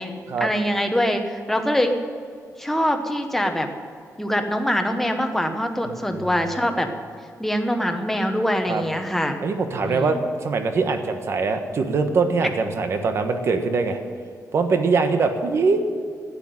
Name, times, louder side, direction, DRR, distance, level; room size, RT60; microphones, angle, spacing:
voice 1, 0.4-2.0 2.6-3.7 4.2-6.9 7.4-9.4 9.8-10.2, equal, 5° left, 5 dB, 1.1 m, -23 dB
voice 2, 9.4-14.0 14.5-15.8, right 4 dB, 50° right, 6 dB, 1.2 m, -22 dB
12.0 x 9.9 x 9.5 m, 2.2 s
wide cardioid pair, 170°, 6 cm